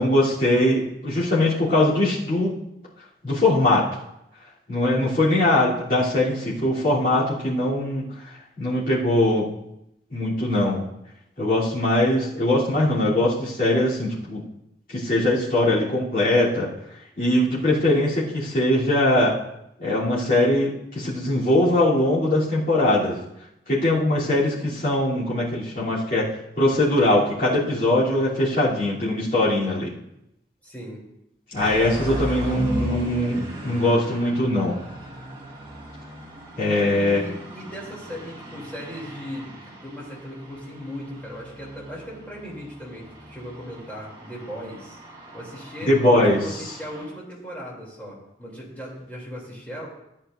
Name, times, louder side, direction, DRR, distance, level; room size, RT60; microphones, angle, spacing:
voice 1, 0.0-2.5 3.2-3.8 4.7-8.0 8.6-9.5 10.1-10.8 11.4-14.4 14.9-16.7 17.2-19.4 19.8-23.2 23.7-26.3 26.6-29.9 31.5-34.7 36.6-37.2 45.9-46.4, left 1 dB, 50° left, -10 dB, 3.1 m, -21 dB
voice 2, 30.6-31.0 36.9-39.5 39.8-45.0 45.3-49.9, equal, 10° left, -5 dB, 2.9 m, -37 dB
sound 1, 31.5-47.1, right 1 dB, 25° right, 2.0 m, -37 dB
14.5 x 9.7 x 2.6 m, 0.82 s
head